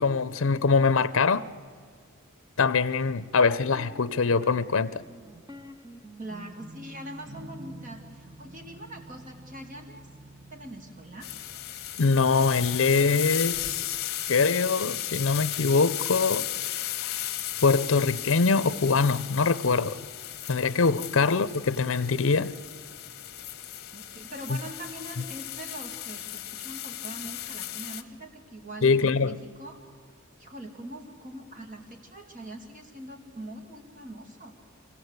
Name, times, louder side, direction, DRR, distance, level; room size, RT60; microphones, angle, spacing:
voice 1, 0.0-1.5 2.6-5.0 12.0-16.4 16.7-17.3 17.6-19.9 20.5-22.5 28.8-29.4, left 4 dB, 70° left, 0.6 m, -23 dB
sound 1, 3.4-13.1, right 1 dB, 20° right, 0.9 m, -48 dB
voice 2, 6.2-10.1 10.5-11.3 23.9-29.8 30.4-34.6, right 1 dB, 40° right, 2.4 m, -43 dB
sound 2, 11.2-28.0, left 13 dB, 50° left, 1.3 m, -35 dB
26.0 x 16.5 x 8.1 m
head